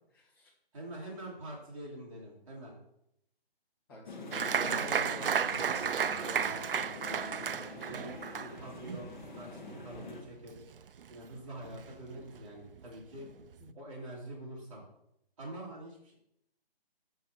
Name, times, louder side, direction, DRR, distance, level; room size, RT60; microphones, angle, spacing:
voice 1, 0.1-0.5 3.9-5.5 13.6-13.7, equal, 20° left, -5 dB, 1.8 m, -48 dB
voice 2, 0.7-2.8 4.6-5.3 5.7-8.1 8.4-10.7 11.1-13.3 13.7-14.8 15.4-16.1, right 1 dB, 30° right, -4 dB, 2.5 m, -46 dB
sound 1, 4.1-10.2, left 4 dB, 50° left, 1.1 m, -45 dB
Applause, 4.3-11.4 11.6-12.4 12.8-12.9 13.2-13.6, right 7 dB, 60° right, 0.4 m, -34 dB
7.1 x 5.8 x 4.2 m, 0.78 s
hypercardioid pair, 170°, 31 cm